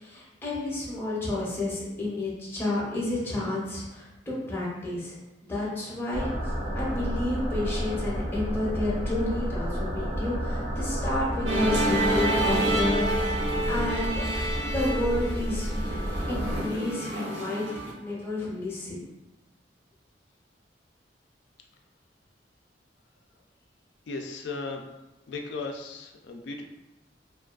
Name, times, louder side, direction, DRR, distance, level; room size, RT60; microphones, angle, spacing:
voice 1, 0.0-5.2 5.5-6.3 6.7-14.2 14.7-15.7 16.3-17.6 18.0-19.0, left 2 dB, 15° left, -6 dB, 0.6 m, -31 dB
sound 1, 6.1-16.6, equal, 30° right, 0.5 m, -31 dB
Musical instrument, 11.5-17.9, right 1 dB, 70° right, 0.6 m, -28 dB
voice 2, 24.1-24.8 25.3-26.6, left 3 dB, 75° left, 3 dB, 0.4 m, -36 dB
2.3 x 2.3 x 2.3 m, 1.0 s
head